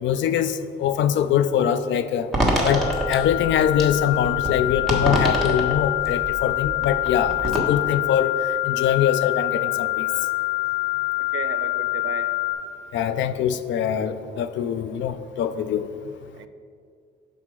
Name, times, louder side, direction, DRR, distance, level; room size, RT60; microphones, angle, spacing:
voice 1, 0.0-2.3 2.6-10.1 12.9-15.9, left 9 dB, 70° left, 12 dB, 0.4 m, -23 dB
sound 1, 2.3-7.6, right 1 dB, ahead, 1.4 m, -26 dB
sound 2, 2.6-12.5, left 22 dB, 30° left, 0.9 m, -26 dB
voice 2, 11.2-12.3 16.3-16.5, right 9 dB, 75° right, 10 dB, 0.5 m, -35 dB
5.8 x 4.9 x 4.7 m, 2.2 s
cardioid pair, 90°, 20 cm